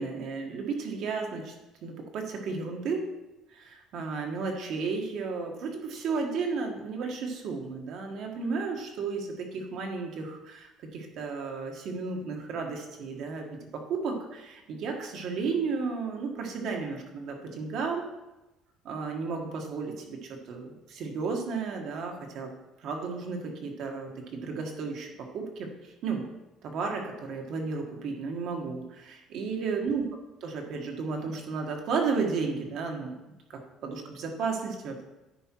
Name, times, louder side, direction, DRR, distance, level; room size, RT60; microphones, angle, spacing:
voice 1, 0.0-1.5 1.8-3.1 3.5-18.0 18.8-22.5 22.8-26.3 26.6-30.0 30.4-35.0, right 4 dB, 55° right, 2 dB, 1.5 m, -33 dB
10.0 x 5.1 x 4.6 m, 1.0 s
cardioid pair, 160°, 0 cm